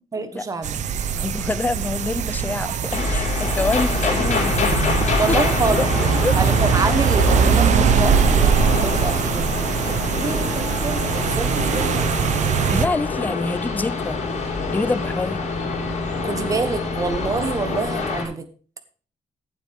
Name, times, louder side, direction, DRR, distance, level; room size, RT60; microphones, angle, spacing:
voice 1, 0.1-0.8 5.2-5.9 6.3-9.5 9.8-12.3 16.2-18.5, right 4 dB, 30° right, 1.3 m, -27 dB
sound 1, 0.6-12.9, right 8 dB, 75° right, 0.8 m, -22 dB
voice 2, 1.1-5.4 5.7-6.4 12.7-14.2 14.7-15.4, left 3 dB, 15° left, 0.6 m, -26 dB
sound 2, 2.9-18.2, left 3 dB, 70° left, 5.9 m, -25 dB
15.5 x 8.2 x 3.6 m
wide cardioid pair, 175°, 12 cm